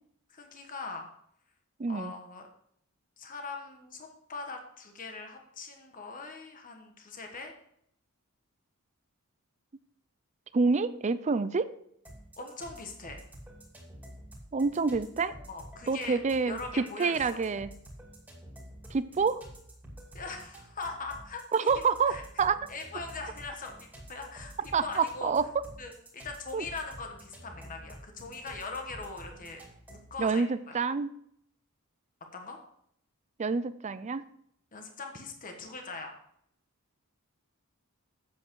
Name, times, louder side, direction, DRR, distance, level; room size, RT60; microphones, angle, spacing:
voice 1, 0.3-1.1 1.9-2.4 3.2-7.5 12.4-13.2 15.5-16.2 16.4-17.4 20.1-21.7 22.1-22.2 22.7-24.5 24.8-25.3 25.8-29.6 29.9-30.8 32.3-32.6 34.7-36.1, left 3 dB, 40° left, 4 dB, 1.3 m, -41 dB
voice 2, 1.8-2.1 10.5-11.7 14.5-15.4 15.9-17.7 18.9-19.4 21.5-22.7 24.7-25.5 26.5-26.7 30.2-31.1 33.4-34.2, right 4 dB, 30° right, 14 dB, 0.4 m, -28 dB
sound 1, 12.0-30.2, right 1 dB, 10° right, 2.4 m, -49 dB
8.5 x 7.5 x 4.6 m, 0.69 s
head